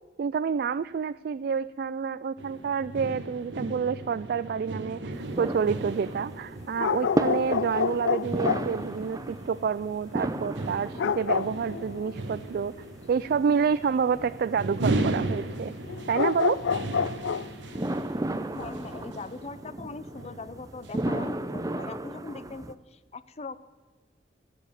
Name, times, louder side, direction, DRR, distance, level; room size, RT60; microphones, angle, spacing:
voice 1, 0.2-12.7 13.1-15.7 16.1-16.6, right 6 dB, 55° right, 15 dB, 0.3 m, -28 dB
sound 1, 2.4-21.3, right 2 dB, 90° right, 1.1 m, -37 dB
sound 2, 5.1-22.7, right 1 dB, 20° right, 0.6 m, -35 dB
sound 3, 6.7-8.7 11.0-12.2 15.9-17.5 17.8-17.9, left 6 dB, 85° left, 0.4 m, -28 dB
voice 2, 18.5-23.6, left 3 dB, 35° left, 15 dB, 0.6 m, -41 dB
15.0 x 7.0 x 8.9 m, 1.4 s
head